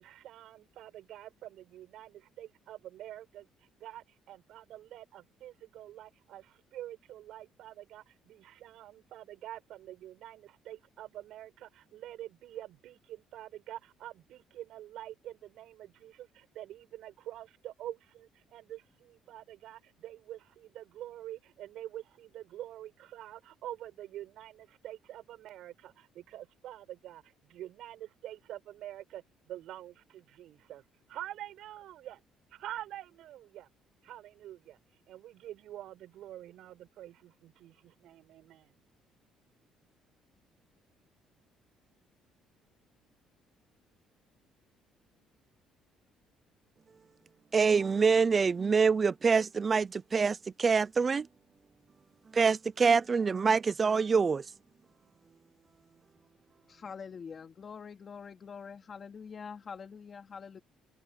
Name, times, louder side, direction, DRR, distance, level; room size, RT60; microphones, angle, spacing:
voice 1, 0.0-3.5 3.8-30.8 31.1-32.2 32.5-33.7 34.0-34.8 35.1-38.7, right 13 dB, 70° right, 7.1 m, -46 dB
voice 2, 47.5-51.3 52.3-54.4, right 5 dB, 30° right, 0.5 m, -25 dB
voice 3, 56.7-60.6, left 6 dB, 35° left, 3.0 m, -45 dB
open air
cardioid pair, 125°, 0 cm